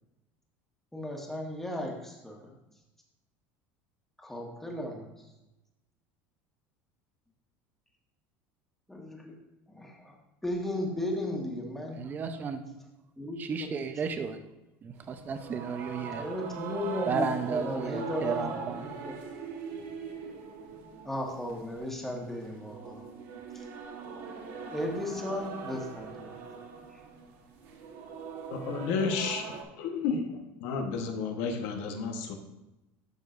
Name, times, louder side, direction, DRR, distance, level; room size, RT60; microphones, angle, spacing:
voice 1, 0.9-2.5 4.2-5.1 8.9-9.3 9.7-10.1 10.4-12.0 13.2-13.4 16.2-17.3 17.6-19.1 21.0-23.0 23.5-23.6 24.7-26.4 26.9-27.0, left 1 dB, 5° left, -1 dB, 1.6 m, -35 dB
voice 2, 12.0-12.6 13.4-14.4 14.8-16.2 17.1-18.9, right 5 dB, 30° right, 8 dB, 0.7 m, -33 dB
sound 1, 15.0-29.6, right 6 dB, 75° right, 1.5 m, -41 dB
voice 3, 28.5-29.5 29.8-32.4, left 5 dB, 75° left, 4 dB, 1.2 m, -32 dB
12.0 x 6.6 x 2.6 m, 0.98 s
cardioid pair, 135°, 6 cm